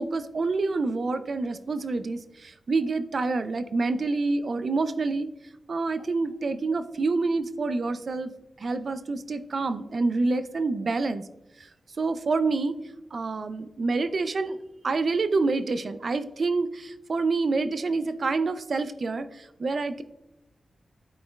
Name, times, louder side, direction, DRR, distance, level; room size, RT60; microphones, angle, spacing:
voice 1, 0.0-5.3 5.7-8.3 8.6-11.2 12.0-12.7 13.1-14.6 14.8-19.3 19.6-20.0, right 3 dB, 55° right, 11 dB, 0.4 m, -27 dB
11.5 x 4.3 x 2.3 m, 0.95 s
cardioid pair, 70°, 0 cm